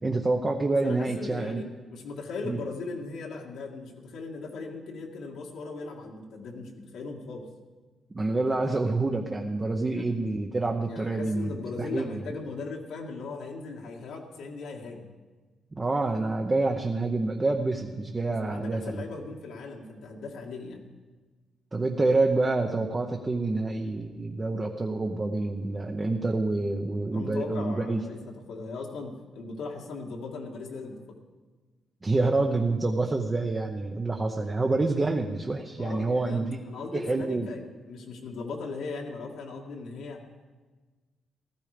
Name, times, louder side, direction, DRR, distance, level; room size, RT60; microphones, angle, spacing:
voice 1, 0.0-1.6 2.4-2.6 8.1-12.2 15.8-19.0 21.7-28.0 32.0-36.6 36.9-37.5, right 2 dB, 20° right, 2 dB, 0.8 m, -27 dB
voice 2, 0.8-7.5 9.9-10.2 10.9-15.1 18.5-20.8 27.1-31.2 34.4-34.5 35.8-40.2, left 4 dB, 85° left, -1 dB, 2.1 m, -38 dB
16.0 x 14.0 x 5.1 m, 1.3 s
cardioid pair, 160°, 0 cm